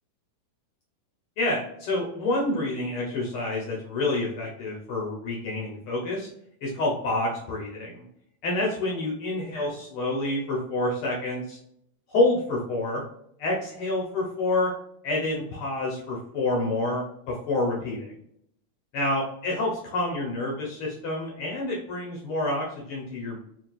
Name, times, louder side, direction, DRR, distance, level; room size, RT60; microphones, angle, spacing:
voice 1, 1.4-6.3 6.6-8.0 8.4-11.6 12.1-13.0 13.4-14.7 15.0-18.1 18.9-23.4, left 2 dB, 75° left, -2 dB, 1.2 m, -28 dB
5.6 x 2.6 x 2.3 m, 0.72 s
omnidirectional pair, 3.6 m